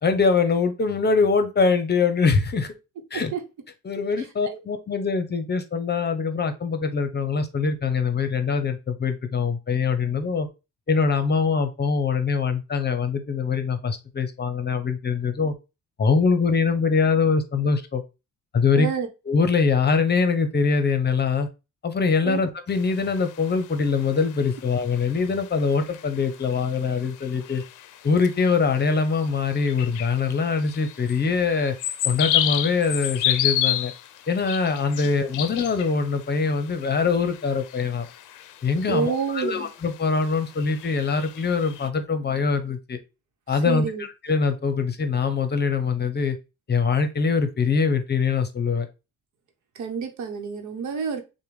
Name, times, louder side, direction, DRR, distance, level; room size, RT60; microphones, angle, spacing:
voice 1, 0.0-2.7 3.1-3.3 3.8-10.5 10.9-15.5 16.0-18.0 18.5-18.9 19.3-21.5 21.8-27.6 28.0-31.7 32.0-33.9 34.3-38.1 38.6-43.0 43.5-46.4 46.7-48.9, left 5 dB, 35° left, 9 dB, 0.8 m, -23 dB
voice 2, 18.7-19.1 22.3-22.4 38.9-39.7 43.7-44.0 49.8-51.2, right 5 dB, 75° right, 6 dB, 1.0 m, -28 dB
sound 1, 22.7-41.9, left 12 dB, 80° left, 0.5 m, -32 dB
6.6 x 2.2 x 3.2 m, 0.27 s
cardioid pair, 90°, 30 cm